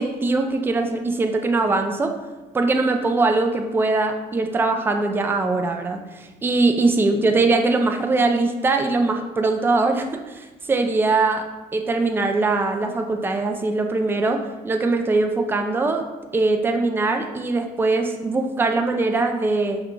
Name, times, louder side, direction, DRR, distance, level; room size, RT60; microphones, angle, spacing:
voice 1, 0.0-2.1 2.5-11.5 11.7-16.1 16.3-19.8, right 3 dB, 15° right, 5 dB, 0.4 m, -21 dB
5.8 x 2.3 x 3.1 m, 1.1 s
cardioid pair, 110°, 17 cm